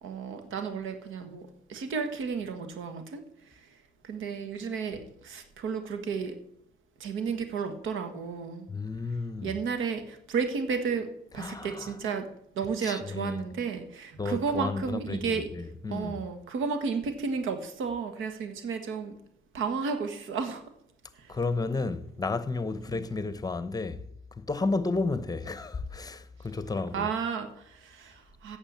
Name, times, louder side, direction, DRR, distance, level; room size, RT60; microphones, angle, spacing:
voice 1, 0.0-3.2 3.5-3.6 4.0-6.4 7.0-8.7 9.4-12.3 12.5-15.5 15.9-19.1 19.5-20.6 21.1-21.3 22.9-23.2 26.9-28.6, right 5 dB, 80° right, 1.5 m, -33 dB
voice 2, 8.7-9.5 11.4-11.9 12.8-13.4 14.2-15.2 15.5-16.2 21.3-24.0 24.4-27.1, left 3 dB, 20° left, 0.9 m, -32 dB
8.8 x 6.7 x 8.6 m
cardioid pair, 90°, 20 cm